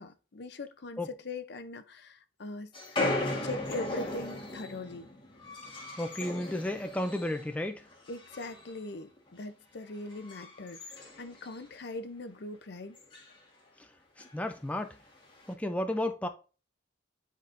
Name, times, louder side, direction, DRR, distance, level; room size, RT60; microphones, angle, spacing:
voice 1, 0.0-2.7 3.4-5.1 8.1-13.0, left 2 dB, 60° left, 0.6 m, -41 dB
sound 1, 2.7-7.5 7.8-8.8 9.2-9.4 9.9-11.9 12.2-12.3 12.5-12.6 12.9-13.4 14.2-14.3 15.2-15.5, left 2 dB, 25° left, 1.5 m, -37 dB
voice 2, 6.0-7.9 14.2-15.0 15.5-16.3, left 1 dB, 5° left, 0.4 m, -33 dB
9.4 x 4.1 x 2.6 m
head